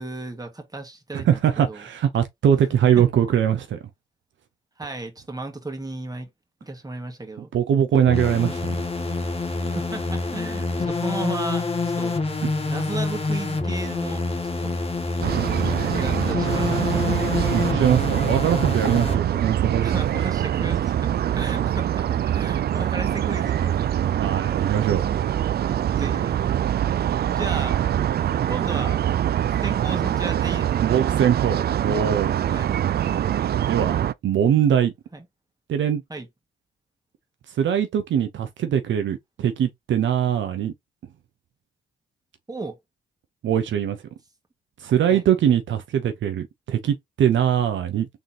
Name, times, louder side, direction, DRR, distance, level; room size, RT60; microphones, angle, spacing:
voice 1, 0.0-1.4 1.7-1.9 2.7-3.0 4.8-6.3 6.6-7.5 9.6-11.7 12.0-12.1 12.6-14.2 14.6-14.8 15.8-17.4 19.8-23.9 25.9-26.5 27.3-27.8 28.5-29.0 29.6-30.8 32.5-32.7 35.1-35.2 36.1-36.3 42.5-42.8 45.1-45.2, right 2 dB, 20° right, 1.7 m, -34 dB
voice 2, 1.1-3.8 7.5-8.6 12.4-12.5 17.5-20.3 24.2-25.1 30.8-32.4 33.6-34.0 34.2-34.9 35.7-36.0 37.6-40.7 43.4-44.0 44.8-48.1, right 9 dB, 70° right, 0.8 m, -22 dB
sound 1, 8.1-19.2, left 3 dB, 30° left, 1.4 m, -27 dB
sound 2, 15.2-34.1, right 11 dB, 55° right, 0.4 m, -24 dB
3.8 x 3.6 x 2.8 m
supercardioid pair, 60°, 20 cm